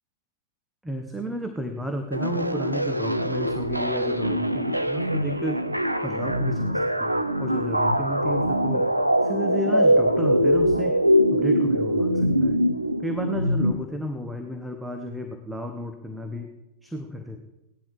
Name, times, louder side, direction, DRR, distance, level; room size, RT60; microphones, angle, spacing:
voice 1, 0.8-5.6 6.0-8.8 9.2-11.0 11.3-12.6 13.0-16.5 16.8-17.4, equal, 5° right, 4 dB, 1.4 m, -33 dB
sound 1, 2.1-13.7, equal, 90° right, 0.7 m, -23 dB
17.5 x 11.5 x 4.8 m, 0.91 s
figure-of-eight pair, 90°, 0 cm